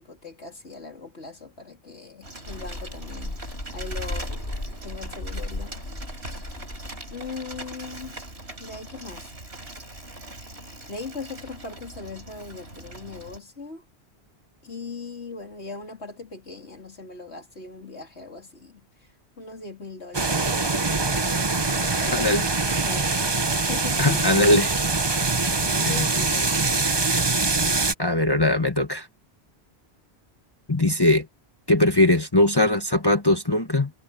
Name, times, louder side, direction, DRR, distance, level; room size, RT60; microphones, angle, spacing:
voice 1, 0.0-3.4 3.7-4.4 4.8-6.0 7.1-8.2 8.6-9.3 10.9-13.9 14.6-22.4 22.8-24.3 25.6-26.9, left 3 dB, 80° left, 3.6 m, -39 dB
Bicycle, 2.2-13.4, right 2 dB, 75° right, 4.9 m, -41 dB
sound 1, 2.4-7.6, left 1 dB, 45° left, 3.5 m, -35 dB
sound 2, 20.1-27.9, right 3 dB, 25° right, 1.0 m, -23 dB
voice 2, 22.1-22.4 24.0-24.8 25.9-26.1 28.0-29.1 30.7-31.3 31.7-33.9, left 1 dB, 20° left, 1.4 m, -20 dB
omnidirectional pair, 1.1 m